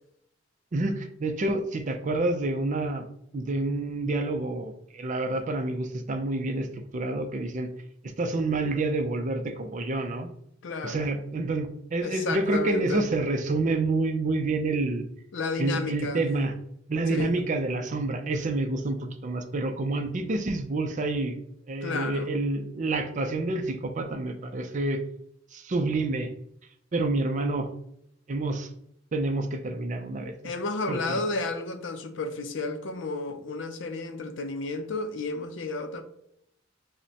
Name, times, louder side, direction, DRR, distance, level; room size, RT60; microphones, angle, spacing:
voice 1, 0.7-3.0 3.3-7.7 8.0-10.3 10.8-15.0 15.6-16.5 16.9-21.4 21.7-25.0 25.5-26.3 26.9-27.7 28.3-28.7 29.1-30.5 30.9-31.2, right 2 dB, 40° right, 0.5 m, -28 dB
voice 2, 5.3-5.6 10.6-11.1 12.0-13.0 15.3-16.2 17.1-17.3 21.8-22.3 30.4-36.0, left 3 dB, 70° left, 0.5 m, -32 dB
5.2 x 2.1 x 2.8 m
head